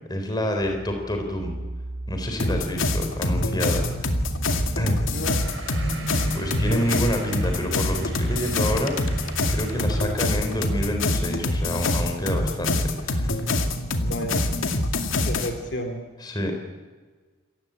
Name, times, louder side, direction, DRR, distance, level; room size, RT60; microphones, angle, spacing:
voice 1, 0.1-1.6 2.1-3.8 4.8-5.0 6.3-12.7 13.0-13.4 16.2-16.5, equal, 20° left, 4 dB, 3.7 m, -28 dB
sound 1, 0.6-12.0, right 1 dB, 30° right, 2.1 m, -38 dB
sound 2, 2.4-15.5, left 2 dB, 85° left, 2.3 m, -25 dB
sound 3, 5.1-10.2, right 1 dB, 75° right, 6.9 m, -38 dB
voice 2, 14.0-14.4 15.3-16.1, equal, 60° left, 4 dB, 2.6 m, -31 dB
27.5 x 15.0 x 8.8 m, 1.5 s
head